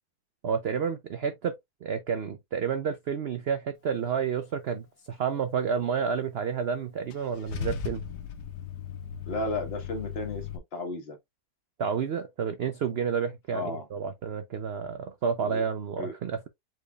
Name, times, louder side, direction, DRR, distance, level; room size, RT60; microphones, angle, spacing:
voice 1, 0.4-1.5 1.8-8.0 11.8-16.5, right 6 dB, 75° right, 0.5 m, -30 dB
Car / Engine starting / Idling, 7.1-10.6, left 8 dB, 85° left, 1.4 m, -37 dB
voice 2, 9.3-11.2 13.5-13.9 15.4-15.6 16.0-16.1, left 2 dB, 40° left, 1.4 m, -34 dB
4.9 x 4.6 x 2.3 m
omnidirectional pair, 1.7 m